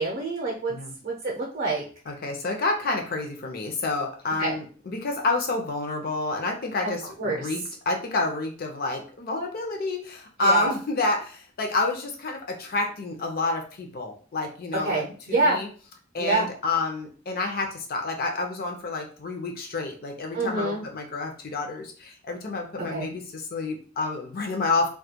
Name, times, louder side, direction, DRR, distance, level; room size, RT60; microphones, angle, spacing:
voice 1, 0.0-0.7 1.0-1.8 4.4-4.5 6.8-6.9 7.2-7.5 10.4-10.7 14.8-15.6 16.2-16.5 20.3-20.8 22.8-23.1, right 2 dB, 50° right, -2 dB, 0.6 m, -26 dB
voice 2, 2.1-15.7 16.1-24.9, left 3 dB, 50° left, 2 dB, 0.5 m, -29 dB
2.3 x 2.2 x 2.7 m, 0.41 s
head